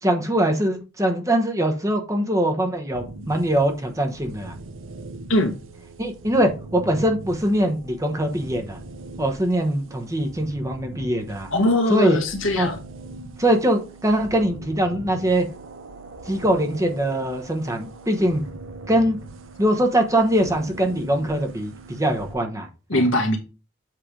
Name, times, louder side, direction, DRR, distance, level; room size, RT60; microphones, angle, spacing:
voice 1, 0.0-4.5 6.0-8.8 9.2-11.5 11.9-12.2 12.6-12.7 13.4-15.4 16.3-18.4 18.9-19.2 19.6-23.0, right 1 dB, 15° right, 1.0 m, -22 dB
sound 1, 2.9-22.4, right 3 dB, 80° right, 0.8 m, -41 dB
voice 2, 11.5-12.8 22.9-23.4, left 1 dB, 80° left, 1.7 m, -21 dB
7.6 x 3.4 x 5.0 m
head